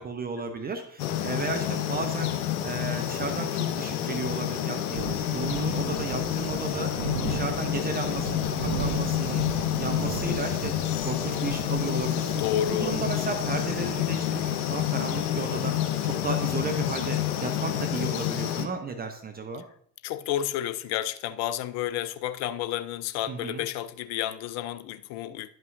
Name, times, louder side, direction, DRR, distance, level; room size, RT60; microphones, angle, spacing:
voice 1, 0.0-2.3 2.6-9.4 9.8-12.4 12.7-19.6 23.3-23.6, right 4 dB, 20° right, 0.6 m, -34 dB
sound 1, 1.0-18.7, left 11 dB, 65° left, 0.9 m, -29 dB
Thunder / Rain, 4.9-15.6, right 7 dB, 80° right, 0.6 m, -37 dB
voice 2, 12.4-13.0 20.0-25.5, left 11 dB, 35° left, 0.5 m, -31 dB
10.5 x 5.5 x 2.6 m
figure-of-eight pair, 70°, 48 cm